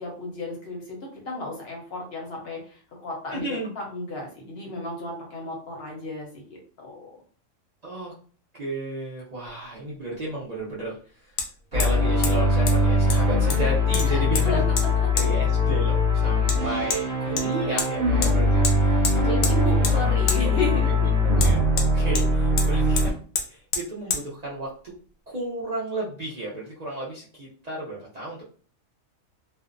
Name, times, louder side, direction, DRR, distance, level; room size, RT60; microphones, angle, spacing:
voice 1, 0.0-7.1 14.1-15.3 17.2-17.5 19.1-20.9, left 2 dB, 55° left, -1 dB, 0.8 m, -33 dB
voice 2, 3.3-3.7 7.8-8.1 8.5-11.0 11.2-11.4 11.7-14.6 15.1-18.9 19.2-19.6 20.4-20.6 20.9-21.0 21.3-23.1 23.5-24.9 25.3-28.4, right 2 dB, 70° right, -6 dB, 0.4 m, -33 dB
Hammer, 9.5-9.6 11.4-11.5 11.8-12.0 12.2-12.3 12.7-12.8 13.1-13.6 13.9-14.5 14.8-14.9 15.2-15.3 16.5-16.6 16.9-17.0 17.4-17.9 18.2-18.3 18.6-18.8 19.0-19.6 19.8-20.0 20.3-20.4 21.4-22.3 22.6-22.7 23.0-23.1 23.4-23.5 23.7-23.9 24.1-24.2, left 5 dB, 85° left, 1.0 m, -28 dB
sound 1, 11.7-23.1, left 2 dB, 45° right, 0.9 m, -21 dB
2.5 x 2.0 x 2.4 m, 0.42 s
omnidirectional pair, 1.5 m